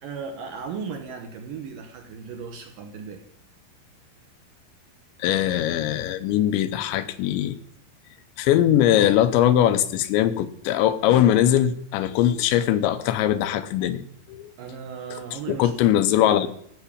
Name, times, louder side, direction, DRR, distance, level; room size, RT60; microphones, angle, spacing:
voice 1, 0.0-3.2 14.6-16.5, right 6 dB, 65° right, 5 dB, 2.3 m, -36 dB
voice 2, 5.2-7.6 8.4-14.0 14.3-14.5 15.5-16.6, left 11 dB, 90° left, 11 dB, 3.2 m, -21 dB
14.0 x 5.8 x 8.6 m, 0.68 s
omnidirectional pair, 5.1 m